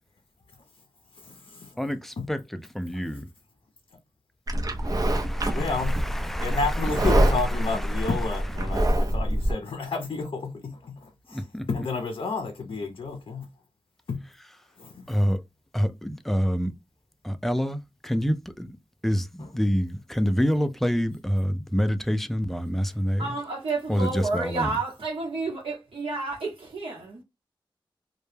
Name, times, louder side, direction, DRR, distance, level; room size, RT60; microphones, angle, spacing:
voice 1, 1.1-1.8 2.2-2.3 2.9-3.0 5.5-13.5 14.1-14.2 14.8-15.2 19.4-19.5, left 4 dB, 75° left, 0.5 m, -31 dB
voice 2, 1.8-3.3 4.8-8.1 11.3-11.7 15.1-15.4 15.7-16.7 17.2-18.8 19.0-23.4 23.9-24.8, equal, 5° left, 0.3 m, -27 dB
Livestock farm animals working animals, 4.5-9.5, right 1 dB, 40° right, 0.5 m, -25 dB
voice 3, 23.2-27.2, right 3 dB, 80° right, 0.8 m, -30 dB
2.2 x 2.0 x 3.1 m
wide cardioid pair, 70°, 9 cm